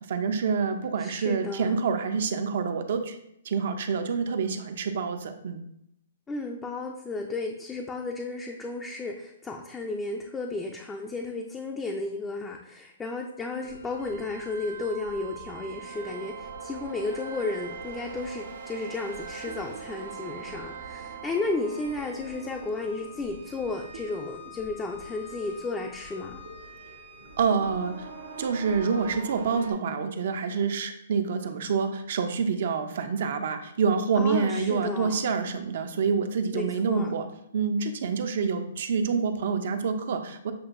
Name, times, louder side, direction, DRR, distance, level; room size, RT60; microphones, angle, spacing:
voice 1, 0.1-3.2 3.4-5.6 27.4-28.1 28.4-37.3 37.5-40.5, right 5 dB, 60° right, 8 dB, 0.5 m, -27 dB
voice 2, 1.0-1.7 6.3-26.4 34.2-35.2 36.5-37.1, left 3 dB, 10° left, 1 dB, 0.4 m, -33 dB
sound 1, 13.6-29.7, right 4 dB, 85° right, 0.9 m, -42 dB
7.4 x 2.6 x 2.5 m, 0.76 s
hypercardioid pair, 150°, 0 cm